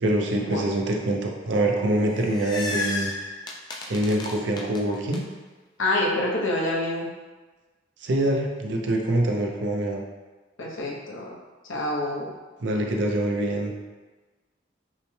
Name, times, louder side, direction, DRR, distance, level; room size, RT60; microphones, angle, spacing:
voice 1, 0.0-3.1 3.9-5.2 8.0-10.0 12.6-13.7, right 1 dB, 65° right, 1 dB, 0.6 m, -25 dB
sound 1, 1.9-5.2, left 3 dB, 20° left, 0.3 m, -33 dB
voice 2, 5.8-7.1 10.6-11.3 11.7-12.3, left 1 dB, 85° left, -2 dB, 0.8 m, -26 dB
5.5 x 2.1 x 3.2 m, 1.3 s
head